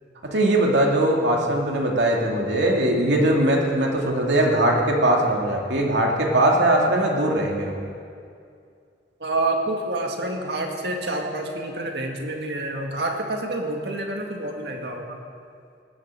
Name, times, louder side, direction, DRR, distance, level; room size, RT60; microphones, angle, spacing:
voice 1, 0.2-7.7, right 1 dB, 90° right, 0 dB, 2.3 m, -20 dB
voice 2, 9.2-15.2, right 2 dB, 65° right, 2 dB, 1.9 m, -28 dB
18.5 x 7.8 x 7.6 m, 2.3 s
head